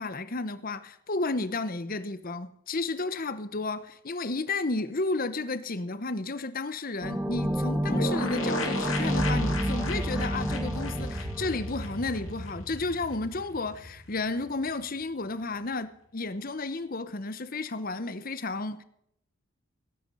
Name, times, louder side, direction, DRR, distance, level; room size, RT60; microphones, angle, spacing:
voice 1, 0.0-18.8, left 3 dB, 40° left, 0.9 m, -32 dB
sound 1, 7.0-12.4, equal, 5° right, 1.1 m, -30 dB
sound 2, 7.9-12.5 12.8-12.9 13.1-13.2, left 2 dB, 65° left, 2.8 m, -35 dB
sound 3, 9.0-15.1, right 1 dB, 60° right, 3.9 m, -36 dB
17.5 x 9.5 x 5.5 m
head